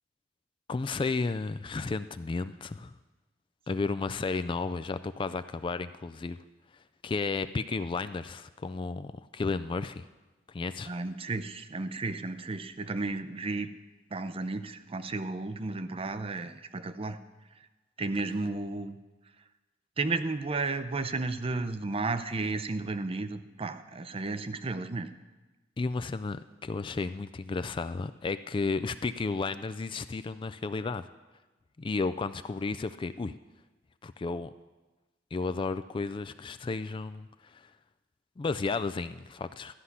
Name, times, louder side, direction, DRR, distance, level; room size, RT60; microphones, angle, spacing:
voice 1, 0.7-2.9 3.7-6.4 7.0-10.1 10.5-10.9 25.8-31.1 31.8-33.4 34.0-34.5 35.3-37.6 38.4-39.7, left 4 dB, 25° left, 12 dB, 0.3 m, -33 dB
voice 2, 10.8-13.7 14.1-17.2 18.0-19.0 20.0-25.1, right 3 dB, 30° right, 11 dB, 0.6 m, -33 dB
13.5 x 5.7 x 9.7 m, 1.2 s
head